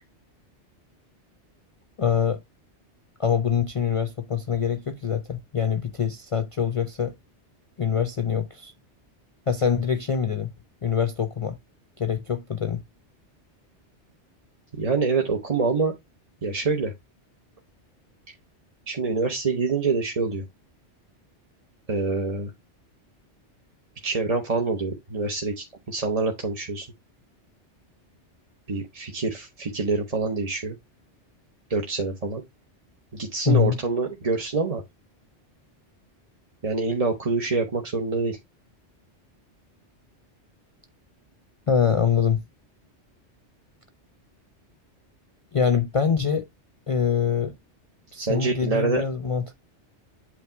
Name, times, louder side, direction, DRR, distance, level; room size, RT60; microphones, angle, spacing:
voice 1, 2.0-2.4 3.2-7.2 7.8-8.7 9.5-10.5 10.8-11.6 12.0-12.8 33.5-33.8 41.7-42.4 45.5-46.5 46.9-47.6 48.1-49.5, left 7 dB, 35° left, 0.6 m, -24 dB
voice 2, 14.7-16.0 16.4-16.9 18.9-20.4 21.9-22.5 24.0-26.9 28.7-30.8 31.7-32.4 33.1-34.8 36.6-38.4 48.2-49.0, right 4 dB, 35° right, 1.0 m, -26 dB
8.3 x 2.9 x 4.5 m
omnidirectional pair, 1.2 m